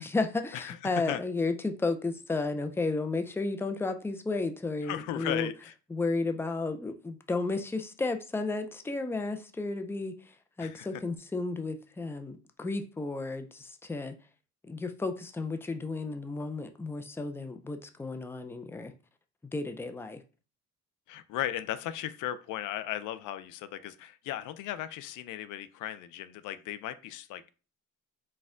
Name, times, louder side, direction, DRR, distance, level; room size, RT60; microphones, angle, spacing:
voice 1, 0.0-5.5 5.9-10.3 10.6-14.2 14.7-18.9 19.5-20.2, left 3 dB, 10° left, 7 dB, 0.4 m, -33 dB
voice 2, 0.5-1.2 4.8-5.7 10.6-11.0 21.1-27.5, left 12 dB, 85° left, 13 dB, 0.5 m, -36 dB
4.2 x 2.3 x 3.7 m, 0.34 s
cardioid pair, 90°, 30 cm